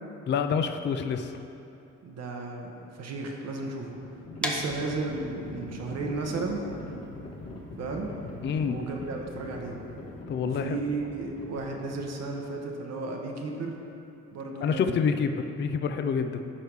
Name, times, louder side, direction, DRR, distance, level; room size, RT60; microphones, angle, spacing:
voice 1, 0.3-1.3 8.4-8.8 10.3-10.8 14.6-16.4, left 6 dB, 40° left, 8 dB, 0.4 m, -27 dB
voice 2, 2.0-4.0 4.4-6.6 7.8-8.1 8.6-9.8 10.4-13.8 14.3-14.9, right 3 dB, 60° right, 1 dB, 0.9 m, -34 dB
Livestock farm animals working animals, 3.5-12.4, left 2 dB, 55° left, 1.7 m, -42 dB
sound 1, 4.4-10.2, left 1 dB, 5° left, 0.7 m, -39 dB
11.0 x 4.8 x 3.4 m, 2.7 s
cardioid pair, 90°, 30 cm